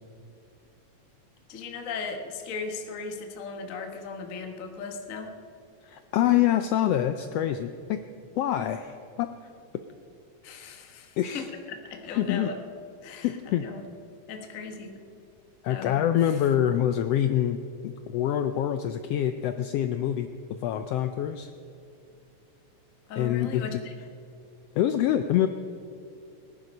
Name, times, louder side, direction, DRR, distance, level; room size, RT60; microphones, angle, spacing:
voice 1, 1.5-5.4 10.4-12.6 13.0-13.8 14.3-15.0 15.7-16.4 23.1-23.9, left 4 dB, 50° left, 4 dB, 0.9 m, -38 dB
voice 2, 5.8-8.0 8.4-9.3 11.2-11.4 12.1-12.5 13.2-13.6 15.6-17.6 17.8-20.3 20.6-21.5 23.2-23.7 24.8-25.5, left 11 dB, 85° left, 9 dB, 1.4 m, -25 dB
19.0 x 11.0 x 5.3 m, 2.6 s
omnidirectional pair, 3.4 m